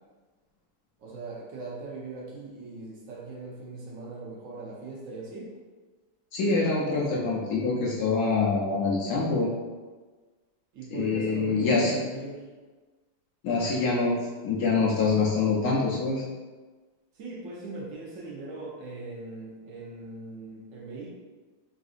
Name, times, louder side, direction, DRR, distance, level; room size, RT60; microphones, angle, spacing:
voice 1, 1.0-5.5 10.7-12.4 17.2-21.1, right 3 dB, 80° right, -4 dB, 0.7 m, -40 dB
voice 2, 6.3-9.5 10.9-12.0 13.4-14.2 14.4-16.2, left 4 dB, 75° left, -4 dB, 0.9 m, -25 dB
3.7 x 2.4 x 2.4 m, 1.3 s
omnidirectional pair, 2.1 m